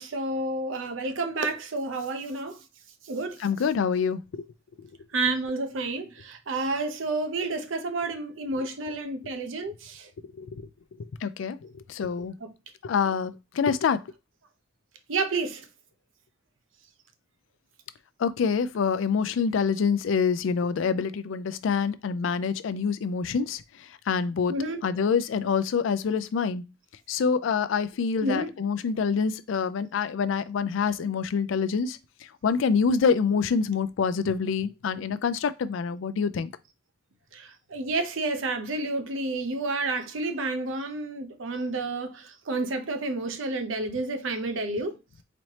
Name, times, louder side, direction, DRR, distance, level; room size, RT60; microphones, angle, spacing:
voice 1, 0.0-2.6 3.0-3.4 5.1-10.1 12.4-12.5 13.0-13.1 15.1-15.6 24.5-24.8 28.2-28.5 37.3-45.0, right 2 dB, 80° right, 0.7 m, -30 dB
voice 2, 3.4-4.4 10.4-10.5 11.2-12.3 12.8-14.0 18.2-23.6 24.1-24.5 24.8-26.6 27.1-32.0 32.4-36.5, left 6 dB, 75° left, 0.4 m, -26 dB
4.1 x 2.9 x 3.2 m
head